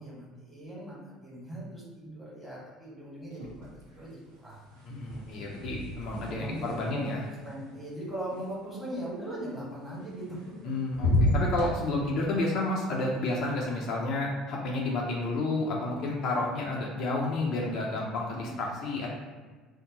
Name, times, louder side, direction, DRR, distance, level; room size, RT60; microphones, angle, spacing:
voice 1, 0.0-4.8 6.2-7.1 7.4-10.3 16.9-17.0 18.3-18.6, right 1 dB, 10° right, -6 dB, 1.5 m, -40 dB
sound 1, 3.3-4.0 4.3-8.4 10.0-10.6 10.9-11.7, left 1 dB, 80° right, 0.7 m, -31 dB
voice 2, 4.9-7.2 10.6-19.1, left 2 dB, 55° left, -2 dB, 0.5 m, -31 dB
2.7 x 2.1 x 3.9 m, 1.4 s
figure-of-eight pair, 60°, 0 cm